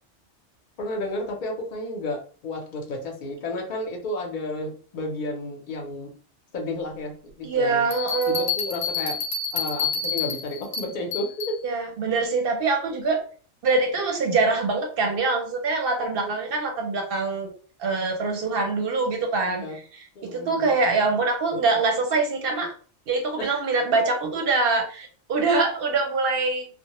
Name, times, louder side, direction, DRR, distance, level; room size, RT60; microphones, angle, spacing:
voice 1, 0.8-6.1 6.5-7.9 8.3-9.2 9.5-11.5 16.0-16.3 19.5-19.8 20.2-20.7 23.4-23.6, left 2 dB, 50° left, 1 dB, 0.6 m, -32 dB
voice 2, 7.4-8.5 11.6-13.2 13.6-17.5 17.8-19.6 19.9-22.7 23.1-26.7, right 3 dB, 60° right, 2 dB, 0.7 m, -24 dB
sound 1, 7.9-11.6, left 6 dB, 85° left, 1.0 m, -29 dB
2.1 x 2.1 x 2.8 m, 0.42 s
omnidirectional pair, 1.2 m